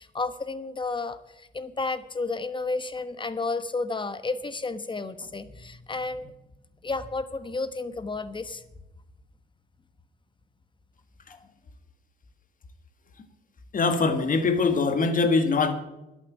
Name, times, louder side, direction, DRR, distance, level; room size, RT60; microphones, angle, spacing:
voice 1, 0.0-6.3 6.8-8.6 11.3-11.4, left 3 dB, 25° left, 12 dB, 1.1 m, -32 dB
voice 2, 13.7-15.7, left 4 dB, 45° left, 8 dB, 1.8 m, -22 dB
11.5 x 8.6 x 8.2 m, 0.93 s
cardioid pair, 90°, 20 cm